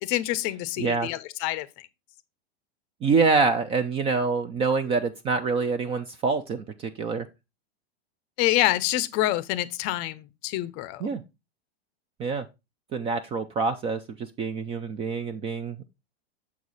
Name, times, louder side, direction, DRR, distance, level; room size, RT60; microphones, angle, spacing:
voice 1, 0.0-1.9 8.4-11.0, left 15 dB, 40° left, 0.6 m, -27 dB
voice 2, 0.8-1.1 3.0-7.2 11.0-11.2 12.2-12.4 12.9-14.0 14.4-15.8, right 4 dB, 20° right, 0.4 m, -26 dB
6.9 x 4.7 x 4.0 m
supercardioid pair, 135°, 32 cm